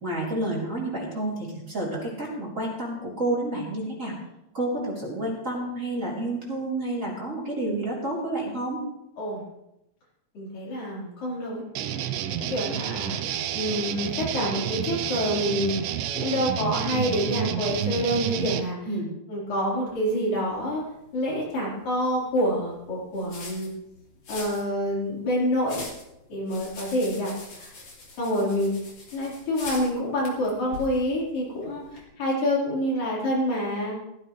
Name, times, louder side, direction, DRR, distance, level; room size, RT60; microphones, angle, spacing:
voice 1, 0.0-4.1 4.5-8.8 18.9-19.1, right 1 dB, 20° right, -4 dB, 4.0 m, -29 dB
voice 2, 10.3-11.6 12.4-13.2 13.5-15.8 16.1-18.8 19.3-20.8 21.1-23.7 24.3-25.8 26.3-27.7 28.2-28.7 29.1-34.0, equal, 85° left, -6 dB, 6.2 m, -27 dB
sound 1, 11.8-18.6, right 10 dB, 90° right, 2.5 m, -30 dB
sound 2, 19.9-32.0, left 3 dB, 50° left, 3.9 m, -44 dB
15.5 x 15.0 x 3.3 m, 0.88 s
omnidirectional pair, 3.8 m